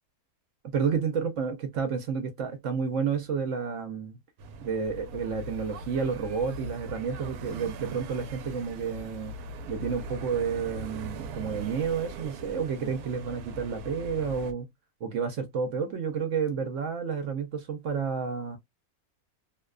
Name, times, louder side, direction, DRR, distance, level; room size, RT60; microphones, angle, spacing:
voice 1, 0.6-4.2 4.6-9.3 9.7-14.7 15.0-18.6, right 6 dB, 65° right, 0.9 m, -30 dB
sound 1, 4.4-14.5, right 2 dB, 85° right, 1.1 m, -40 dB
2.7 x 2.2 x 2.2 m
omnidirectional pair, 1.6 m